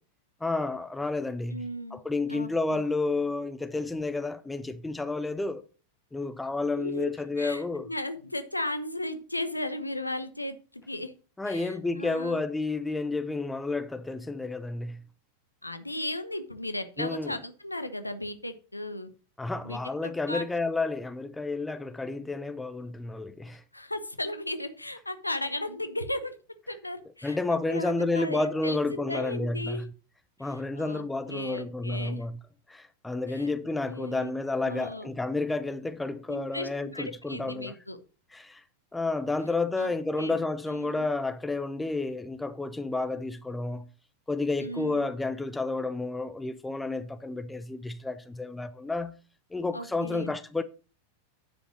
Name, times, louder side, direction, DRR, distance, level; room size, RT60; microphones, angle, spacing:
voice 1, 0.4-1.6 1.9-5.6 6.1-7.9 11.4-15.0 17.0-17.4 19.4-23.6 27.2-29.9 30.4-32.4 32.7-37.7 38.3-38.6 38.9-43.9 44.3-49.2 49.5-50.6, left 3 dB, 5° left, 0.7 m, -31 dB
voice 2, 1.5-2.0 2.3-2.8 6.7-7.1 7.4-11.1 11.5-12.4 15.6-19.1 19.6-20.4 23.7-26.3 26.7-29.8 30.4-32.2 33.3-34.3 34.6-35.1 36.3-38.0 39.8-40.4 40.7-41.1 44.6-45.1 49.7-50.3, left 1 dB, 85° left, 1.0 m, -36 dB
9.7 x 5.2 x 6.1 m
figure-of-eight pair, 90°, 0 cm